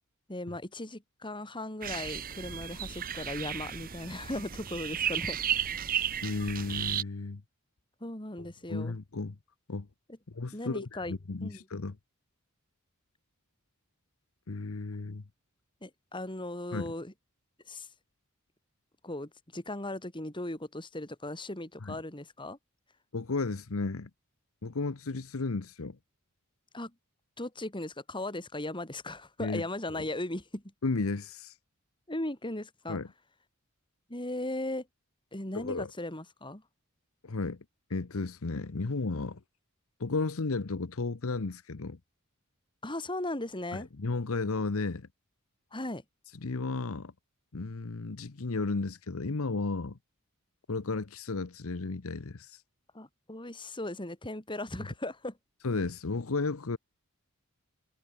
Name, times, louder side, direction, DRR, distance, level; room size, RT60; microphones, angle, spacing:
voice 1, 0.3-5.4 8.0-8.9 10.5-11.2 11.4-11.6 15.8-17.1 17.7-17.9 19.0-22.6 26.7-26.9 27.4-30.6 32.1-33.0 34.1-34.9 35.3-36.6 42.8-43.9 45.7-46.0 52.9-55.4, left 1 dB, 20° left, 3.9 m, -37 dB
sound 1, 1.8-7.0, right 9 dB, 40° right, 0.9 m, -34 dB
voice 2, 6.2-7.4 8.7-9.4 9.7-9.9 10.3-12.0 14.5-15.2 16.7-16.9 21.8-21.9 23.1-24.1 24.6-26.0 29.4-29.6 29.9-30.1 30.8-31.6 32.9-33.1 35.5-35.9 37.2-37.6 37.9-39.4 40.0-42.0 43.7-45.1 46.3-47.1 47.5-50.0 50.7-52.6 54.8-54.9 55.6-56.8, left 3 dB, 70° left, 0.9 m, -33 dB
head